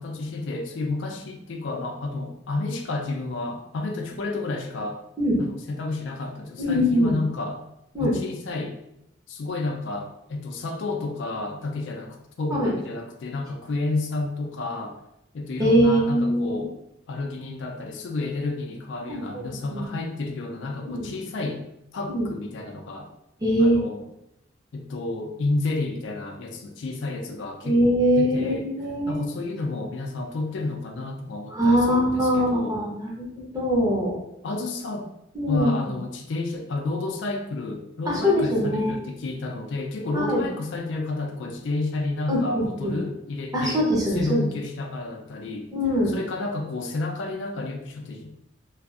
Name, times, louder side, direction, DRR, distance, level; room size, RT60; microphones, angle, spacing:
voice 1, 0.0-5.0 5.4-7.6 8.0-8.7 9.3-15.0 15.3-16.7 17.1-21.6 21.9-23.1 23.6-24.0 24.7-28.7 29.1-32.8 34.4-35.1 35.5-45.7 46.1-48.3, left 2 dB, 70° left, 3 dB, 0.4 m, -31 dB
voice 2, 6.6-7.1 7.9-8.1 12.5-12.7 15.6-16.7 19.1-19.8 20.9-21.1 22.1-22.3 23.4-23.8 27.6-29.2 31.5-34.1 35.3-35.9 38.1-38.9 40.1-40.5 42.3-42.9 43.5-44.5 45.7-46.1, equal, 20° right, -4 dB, 0.6 m, -22 dB
2.6 x 2.4 x 2.3 m, 0.83 s
head